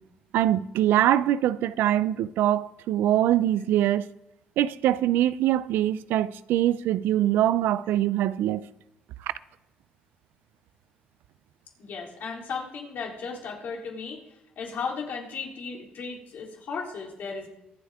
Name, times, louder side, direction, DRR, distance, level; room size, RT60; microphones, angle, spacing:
voice 1, 0.3-4.0 4.6-8.6, right 12 dB, 85° right, 0.5 m, -23 dB
voice 2, 11.8-14.2 14.6-17.5, left 5 dB, 65° left, 3.6 m, -35 dB
23.5 x 8.2 x 3.6 m
cardioid pair, 85°, 3 cm